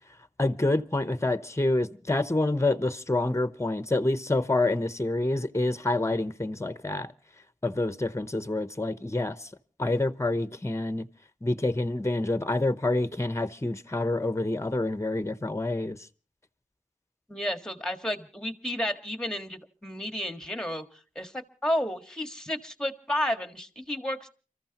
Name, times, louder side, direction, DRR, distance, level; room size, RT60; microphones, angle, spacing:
voice 1, 0.4-7.1 7.6-9.5 9.8-11.0 11.4-16.0, left 2 dB, 20° left, 0.9 m, -27 dB
voice 2, 17.3-20.8 21.1-21.3 21.6-24.3, equal, 5° left, 1.7 m, -31 dB
29.5 x 14.5 x 2.9 m
wide cardioid pair, 50°, 14 cm